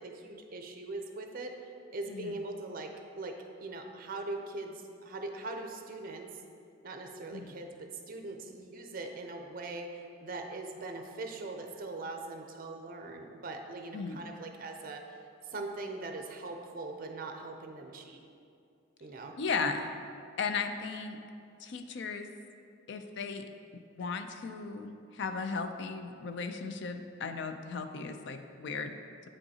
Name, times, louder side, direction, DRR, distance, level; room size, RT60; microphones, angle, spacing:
voice 1, 0.0-1.5 1.9-6.3 6.8-18.2 19.0-19.3, right 2 dB, 45° right, 4 dB, 0.5 m, -41 dB
voice 2, 19.4-19.9 20.4-21.2 21.6-22.3 22.9-23.4 23.9-28.9, left 5 dB, 60° left, 7 dB, 0.4 m, -36 dB
8.3 x 5.4 x 2.8 m, 2.5 s
head